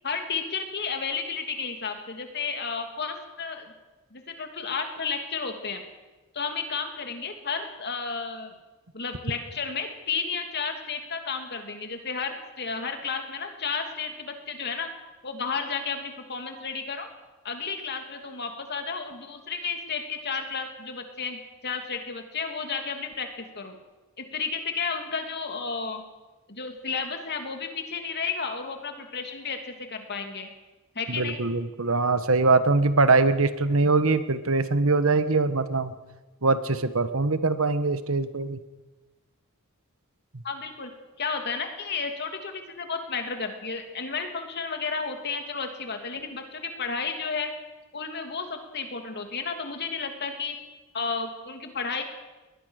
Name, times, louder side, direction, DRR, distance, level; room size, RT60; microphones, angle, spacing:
voice 1, 0.0-3.7 4.1-5.8 6.3-8.5 8.9-14.9 15.2-17.1 17.4-23.7 24.2-26.0 26.5-30.5 30.9-31.4 40.4-40.9 41.2-47.5 47.9-50.6 50.9-52.0, left 5 dB, 50° left, 5 dB, 2.8 m, -32 dB
voice 2, 31.1-35.9 36.4-38.6, right 3 dB, 65° right, 12 dB, 1.3 m, -22 dB
21.0 x 20.0 x 6.6 m, 1.1 s
head